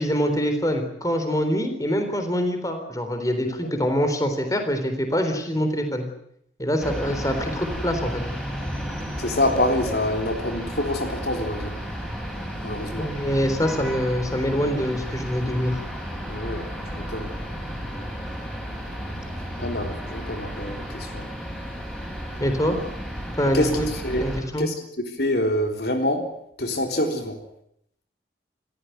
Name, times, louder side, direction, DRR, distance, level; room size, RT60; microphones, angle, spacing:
voice 1, 0.0-6.0 6.6-8.2 13.0-15.8 22.4-22.8 23.4-23.9 24.2-24.7, equal, 20° left, 7 dB, 3.8 m, -24 dB
sound 1, 6.8-24.4, equal, 5° left, 7.3 m, -33 dB
voice 2, 9.2-11.8 12.6-13.1 16.3-16.7 16.9-17.3 19.6-21.3 23.5-24.2 24.6-24.7 25.2-26.3 26.6-27.4, left 1 dB, 65° left, 5 dB, 3.8 m, -26 dB
29.0 x 15.0 x 9.3 m, 0.73 s
head